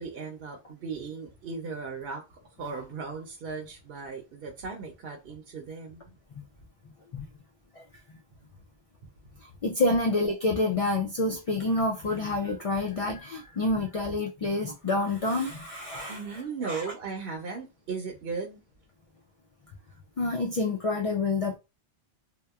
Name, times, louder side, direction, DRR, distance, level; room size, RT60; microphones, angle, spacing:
voice 1, 0.0-6.0 16.1-18.6, right 4 dB, 70° right, 0.8 m, -37 dB
voice 2, 9.4-16.9 20.2-21.6, left 2 dB, 60° left, 0.3 m, -28 dB
2.8 x 2.1 x 2.3 m
omnidirectional pair, 1.1 m